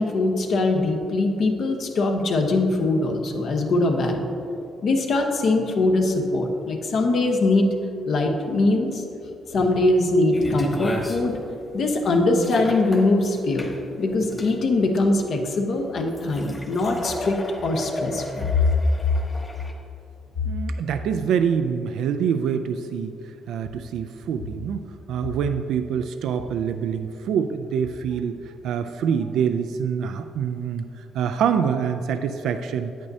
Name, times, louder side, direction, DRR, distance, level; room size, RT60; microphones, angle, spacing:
voice 1, 0.0-4.3 4.8-7.7 8.1-9.0 9.5-11.4 11.7-18.5, left 2 dB, 60° left, 3 dB, 1.0 m, -22 dB
sound 1, 10.3-19.7, left 1 dB, 20° left, 1.4 m, -35 dB
voice 2, 20.4-23.1 23.5-32.9, right 7 dB, 80° right, 9 dB, 0.3 m, -25 dB
9.3 x 8.7 x 2.7 m, 2.7 s
cardioid pair, 90°, 0 cm